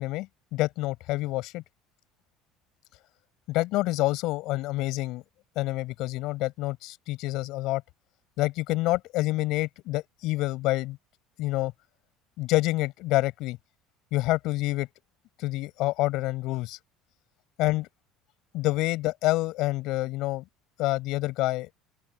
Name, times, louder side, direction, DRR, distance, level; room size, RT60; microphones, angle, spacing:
voice 1, 0.0-1.6 3.5-5.2 5.5-7.8 8.4-11.0 11.4-11.7 12.4-13.6 14.1-14.9 15.4-16.8 17.6-17.9 18.5-20.4 20.8-21.7, left 19 dB, 70° left, 8.0 m, -27 dB
open air
supercardioid pair, 95°, 0 cm